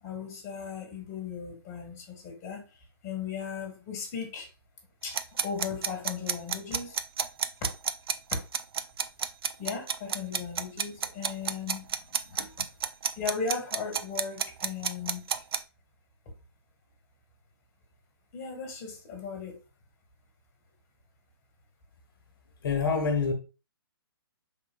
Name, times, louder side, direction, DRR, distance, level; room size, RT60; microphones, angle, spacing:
voice 1, 0.0-2.6 3.0-4.5 5.0-7.0 8.3-8.4 9.6-11.8 13.1-15.4 18.3-19.6, left 6 dB, 20° left, 1.3 m, -37 dB
sound 1, 5.1-15.6, right 7 dB, 65° right, 0.4 m, -30 dB
voice 2, 22.6-23.3, left 5 dB, 60° left, 0.9 m, -27 dB
4.7 x 3.7 x 2.2 m
hypercardioid pair, 150°, 13 cm